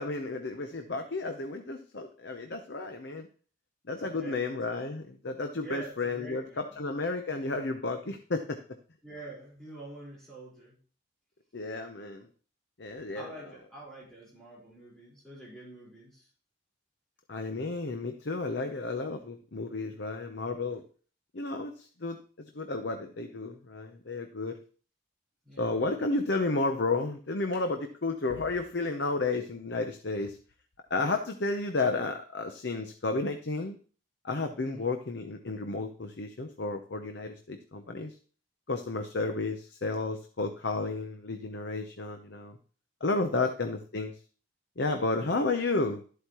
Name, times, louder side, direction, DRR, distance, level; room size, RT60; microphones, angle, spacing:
voice 1, 0.0-3.3 3.9-8.6 11.5-12.3 12.8-13.3 17.3-20.8 21.3-22.2 22.5-24.6 25.6-30.4 30.9-33.8 34.2-38.1 38.7-42.6 43.0-44.2 44.8-46.0, left 3 dB, 55° left, 6 dB, 0.8 m, -32 dB
voice 2, 4.0-4.6 5.6-6.8 9.0-10.8 13.1-16.2 25.4-26.0 34.6-34.9, right 2 dB, ahead, -7 dB, 4.4 m, -46 dB
12.5 x 8.1 x 3.0 m, 0.40 s
head